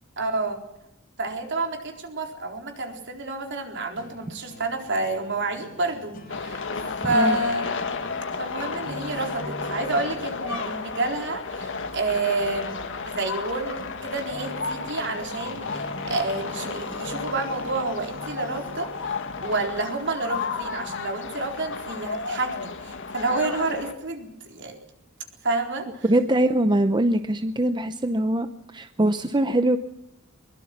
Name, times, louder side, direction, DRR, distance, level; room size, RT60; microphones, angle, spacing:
voice 1, 0.2-0.6 1.2-6.7 7.0-7.8 8.4-12.8 13.1-24.8 25.4-26.1, right 2 dB, 60° right, 3 dB, 4.0 m, -29 dB
sound 1, 4.0-21.4, left 1 dB, 45° left, 3.7 m, -45 dB
sound 2, 6.3-23.9, left 4 dB, 60° left, 2.0 m, -33 dB
voice 2, 7.0-7.4 26.0-29.8, right 1 dB, 20° right, 10 dB, 0.7 m, -22 dB
22.5 x 22.0 x 6.0 m, 0.86 s
head